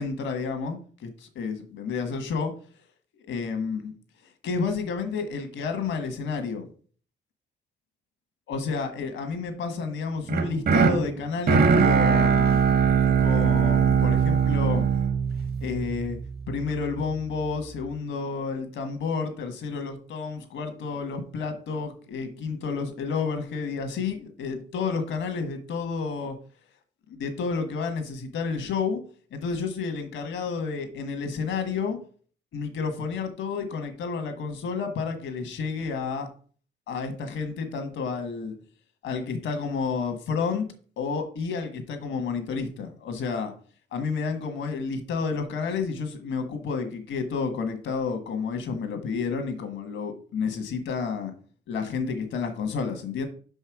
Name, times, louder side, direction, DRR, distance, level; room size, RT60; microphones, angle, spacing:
voice 1, 0.0-2.5 3.3-3.9 4.4-6.7 8.5-12.6 13.2-14.9 15.6-16.2 16.5-26.4 27.1-29.0 29.3-32.0 32.5-36.3 36.9-38.5 39.0-40.6 41.0-43.5 43.9-51.3 51.7-53.3, left 5 dB, 75° left, 7 dB, 1.5 m, -30 dB
sound 1, 10.3-16.4, right 6 dB, 50° right, 1.1 m, -21 dB
5.8 x 5.4 x 4.8 m, 0.43 s
cardioid pair, 90°, 20 cm